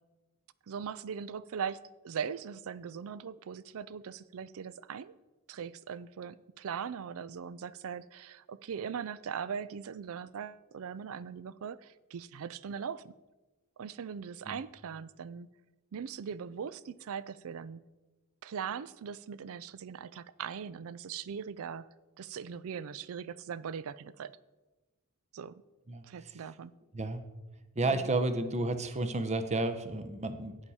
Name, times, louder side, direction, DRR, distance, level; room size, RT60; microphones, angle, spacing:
voice 1, 0.7-5.1 5.5-13.1 13.8-15.5 15.9-17.8 18.4-21.9 22.2-24.4 25.3-25.6 26.0-26.8 27.9-28.1, right 7 dB, 65° right, 0.4 m, -40 dB
voice 2, 25.9-26.4 26.9-27.2 27.8-30.6, right 2 dB, 30° right, 0.8 m, -32 dB
11.5 x 8.9 x 4.2 m
head